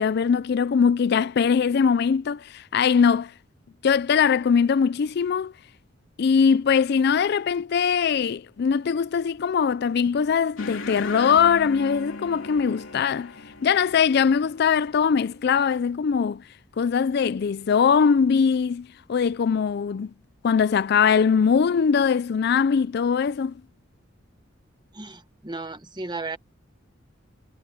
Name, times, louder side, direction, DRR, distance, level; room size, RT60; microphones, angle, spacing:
voice 1, 0.0-3.3 3.8-5.5 6.2-13.3 13.6-16.4 16.8-20.1 20.4-23.6, left 6 dB, 55° left, 0.4 m, -21 dB
sound 1, 10.6-15.5, left 3 dB, 85° left, 3.4 m, -38 dB
voice 2, 24.9-26.4, right 3 dB, 20° right, 1.3 m, -34 dB
head